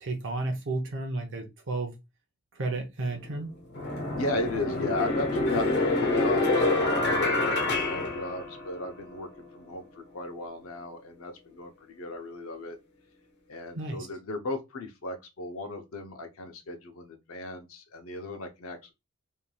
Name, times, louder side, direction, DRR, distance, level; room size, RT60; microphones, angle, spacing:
voice 1, 0.0-1.9 2.5-3.5 13.7-14.1, right 2 dB, 60° right, 0.6 m, -32 dB
sound 1, 3.0-3.1 3.7-8.9, left 2 dB, 55° left, 1.0 m, -27 dB
voice 2, 4.1-12.8 13.5-18.9, left 2 dB, 75° left, 0.7 m, -36 dB
3.2 x 2.7 x 2.2 m
head